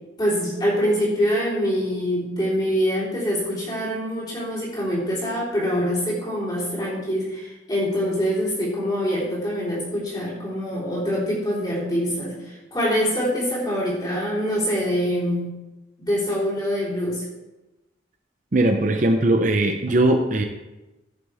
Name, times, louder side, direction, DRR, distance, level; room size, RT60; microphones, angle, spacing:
voice 1, 0.2-15.6 16.0-17.2, equal, 20° left, -7 dB, 3.6 m, -24 dB
voice 2, 18.5-20.4, right 1 dB, 40° right, 5 dB, 0.6 m, -19 dB
15.0 x 6.8 x 3.5 m, 1.1 s
head